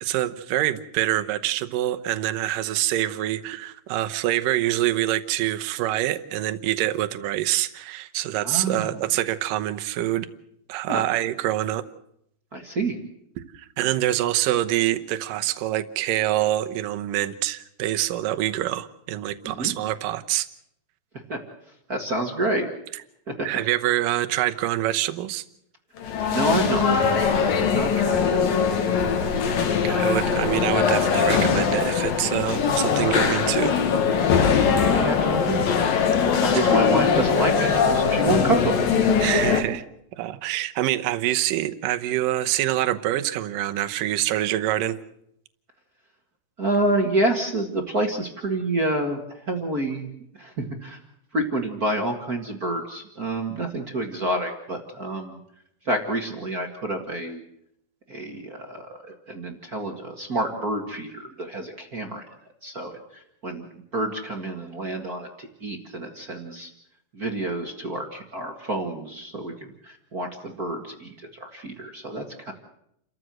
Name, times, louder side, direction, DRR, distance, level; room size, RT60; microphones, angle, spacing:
voice 1, 0.0-10.3 10.7-11.8 13.5-20.5 23.4-25.4 29.4-33.8 36.5-36.8 39.2-39.8 40.1-45.0, right 14 dB, 70° right, 10 dB, 2.4 m, -25 dB
voice 2, 8.4-9.0 10.9-11.0 12.5-13.0 19.4-19.7 21.3-21.4 21.9-22.7 26.3-26.9 27.5-28.4 34.8-35.8 36.4-38.8 46.6-50.1 50.4-51.0 51.3-55.4 55.8-57.4 58.1-62.3 62.6-63.7 63.9-66.7 67.1-72.5, right 2 dB, 40° right, 2 dB, 1.4 m, -28 dB
sound 1, 26.0-39.6, left 6 dB, 65° left, 3.5 m, -21 dB
29.5 x 14.5 x 7.7 m, 0.76 s
omnidirectional pair, 4.6 m